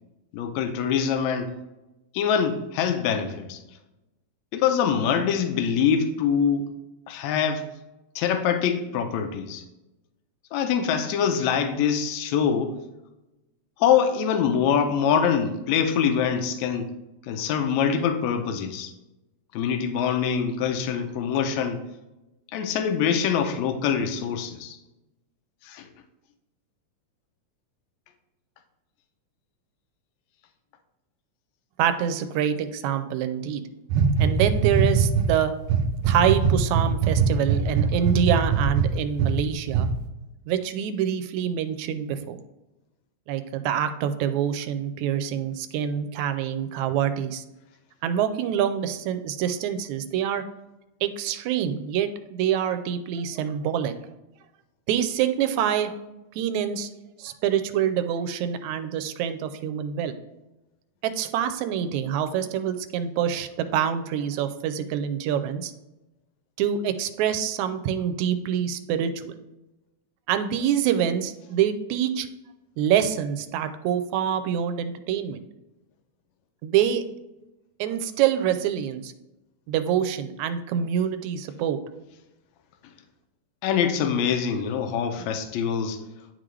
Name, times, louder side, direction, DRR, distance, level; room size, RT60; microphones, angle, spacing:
voice 1, 0.3-1.5 2.1-3.6 4.5-6.7 7.1-7.6 8.2-9.6 10.5-12.8 13.8-16.9 17.3-18.9 19.5-21.8 22.5-24.8 25.6-25.9 83.6-86.0, left 7 dB, 75° left, 7 dB, 2.0 m, -24 dB
voice 2, 31.8-33.6 34.2-35.5 36.0-39.9 40.5-42.4 43.3-47.4 48.0-50.4 51.0-53.9 54.9-56.0 56.4-56.9 57.2-60.1 61.0-65.7 66.6-69.4 70.3-72.3 72.8-75.4 76.6-77.0 77.8-79.1 79.7-81.8, right 9 dB, 85° right, 9 dB, 1.9 m, -26 dB
sound 1, 33.9-35.3 35.6-39.3 39.7-39.9, right 6 dB, 70° right, 1.3 m, -21 dB
10.5 x 3.8 x 3.2 m, 0.98 s
omnidirectional pair, 3.3 m